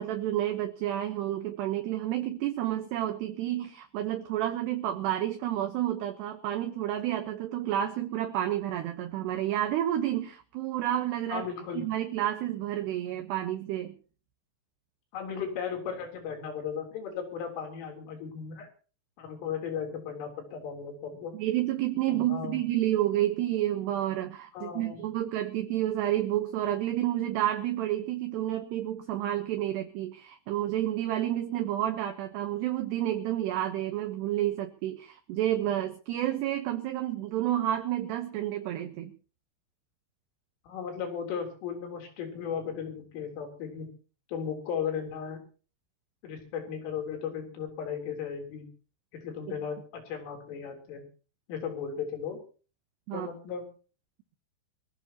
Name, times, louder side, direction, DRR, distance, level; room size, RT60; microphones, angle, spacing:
voice 1, 0.0-11.5 11.7-14.0 21.3-39.1 49.5-49.6 53.1-53.3, right 12 dB, 70° right, 5 dB, 2.9 m, -30 dB
voice 2, 11.3-11.9 15.1-18.7 19.2-21.4 22.1-22.6 24.5-25.0 40.7-43.9 44.3-45.4 46.2-48.7 49.1-51.0 51.5-52.4 53.1-53.7, left 7 dB, 75° left, 3 dB, 6.2 m, -36 dB
23.5 x 15.5 x 3.0 m, 0.38 s
omnidirectional pair, 5.8 m